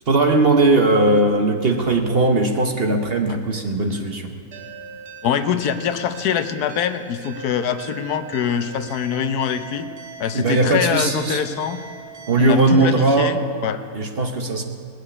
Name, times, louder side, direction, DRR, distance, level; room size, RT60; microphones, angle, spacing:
voice 1, 0.1-4.3 10.3-11.4 12.3-13.4 13.9-14.6, right 2 dB, 45° right, 5 dB, 1.0 m, -18 dB
sound 1, 4.5-13.2, right 6 dB, 90° right, 1.9 m, -40 dB
voice 2, 5.2-9.9 10.2-11.8 12.4-13.8, left 8 dB, 80° left, 10 dB, 1.3 m, -24 dB
18.5 x 6.5 x 9.8 m, 2.3 s
omnidirectional pair, 1.6 m